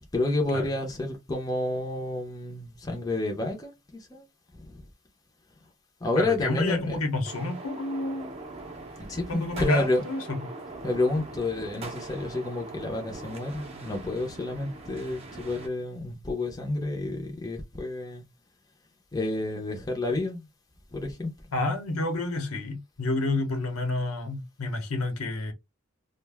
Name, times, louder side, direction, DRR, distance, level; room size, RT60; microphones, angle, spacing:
voice 1, 0.1-4.2 4.5-4.8 6.0-7.0 9.1-10.0 10.8-18.2 19.1-20.4 20.9-21.3, left 2 dB, 15° left, 0.6 m, -29 dB
voice 2, 6.1-8.3 9.3-10.4 21.5-25.5, left 2 dB, 80° left, 0.9 m, -29 dB
sound 1, 7.2-15.7, right 2 dB, 25° right, 0.6 m, -42 dB
2.5 x 2.2 x 3.3 m
head